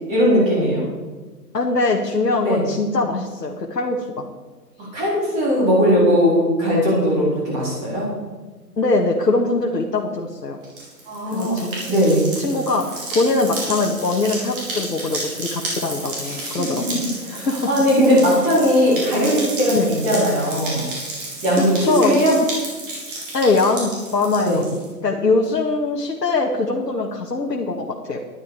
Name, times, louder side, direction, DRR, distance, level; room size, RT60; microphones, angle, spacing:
voice 1, 0.1-0.9 2.4-2.6 4.9-8.1 11.1-12.3 16.2-16.6 17.2-20.9 21.4-22.4 24.4-24.6, equal, 15° right, -6 dB, 4.2 m, -19 dB
voice 2, 1.5-4.3 8.8-10.6 11.3-11.7 12.4-12.8 13.1-17.0 17.3-17.6 19.7-19.9 21.6-22.1 23.3-28.2, left 3 dB, 75° left, -1 dB, 2.0 m, -22 dB
sound 1, 10.6-24.9, right 2 dB, 30° right, 4.8 m, -32 dB
13.0 x 12.0 x 5.0 m, 1.3 s
figure-of-eight pair, 155°, 50 cm